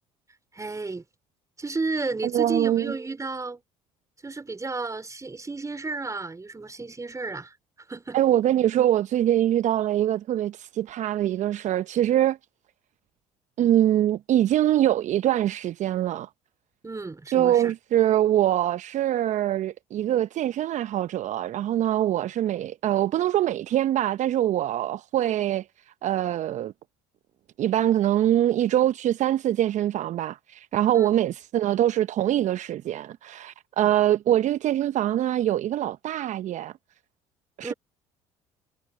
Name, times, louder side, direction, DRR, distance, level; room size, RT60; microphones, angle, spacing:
voice 1, 0.5-1.0 1.6-3.6 4.2-8.2 16.8-17.7 30.9-31.1 37.6-37.7, right 3 dB, 20° right, 4.4 m, -33 dB
voice 2, 2.3-2.9 8.1-12.4 13.6-16.3 17.3-25.6 26.0-26.7 27.6-36.7 37.6-37.7, right 12 dB, 55° right, 0.9 m, -23 dB
hypercardioid pair, 55°, 15 cm